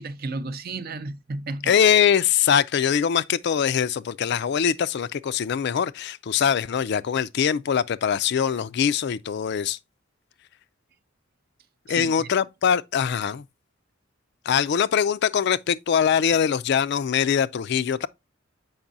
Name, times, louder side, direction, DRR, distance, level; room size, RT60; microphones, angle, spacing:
voice 1, 0.0-1.7 12.0-12.3, right 3 dB, 50° right, 0.5 m, -33 dB
voice 2, 1.6-9.8 11.9-13.4 14.5-18.1, left 8 dB, 55° left, 0.3 m, -22 dB
7.1 x 5.3 x 2.6 m
head